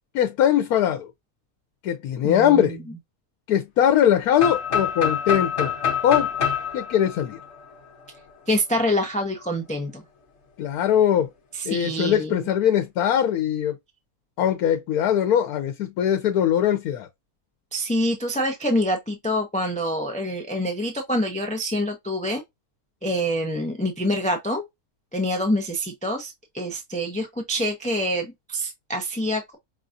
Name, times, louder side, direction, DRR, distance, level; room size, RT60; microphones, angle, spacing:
voice 1, 0.1-1.1 1.8-2.8 3.5-5.7 6.0-6.3 6.7-7.4 10.6-11.3 11.6-13.8 14.4-17.1, left 10 dB, 90° left, 1.2 m, -21 dB
voice 2, 2.2-2.7 8.5-10.0 11.6-12.5 17.7-22.4 23.0-24.6 25.1-29.6, equal, 10° left, 0.5 m, -26 dB
sound 1, 4.4-8.2, left 8 dB, 55° left, 1.2 m, -26 dB
5.4 x 2.5 x 2.6 m
omnidirectional pair, 1.5 m